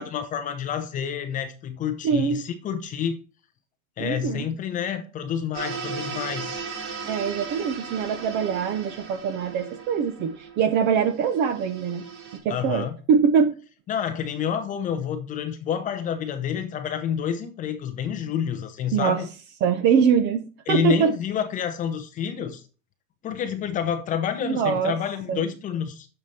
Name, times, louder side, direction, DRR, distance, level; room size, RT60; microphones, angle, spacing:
voice 1, 0.0-3.2 4.0-6.6 12.5-13.0 13.9-19.3 20.7-22.6 23.2-26.1, left 8 dB, 20° left, 0.7 m, -28 dB
voice 2, 2.0-2.4 4.0-4.5 7.0-12.0 12.3-13.5 18.9-19.2 19.6-20.4 20.7-21.1 24.4-25.0 25.3-25.4, right 7 dB, 25° right, 0.5 m, -23 dB
sound 1, 5.5-12.4, right 5 dB, 75° right, 5.0 m, -36 dB
7.0 x 6.2 x 4.2 m
supercardioid pair, 160°, 42 cm